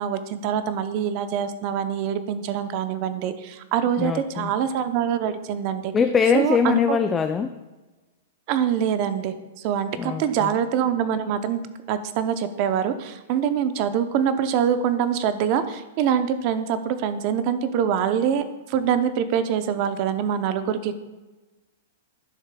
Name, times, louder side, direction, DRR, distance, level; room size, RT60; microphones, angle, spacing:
voice 1, 0.0-5.9 6.3-7.0 8.5-11.6 11.9-20.9, right 8 dB, 45° right, 11 dB, 0.6 m, -24 dB
voice 2, 4.0-4.5 5.9-7.5 10.0-10.5, left 6 dB, 15° left, 8 dB, 0.3 m, -22 dB
11.0 x 6.3 x 2.2 m, 1.2 s
hypercardioid pair, 140°, 0 cm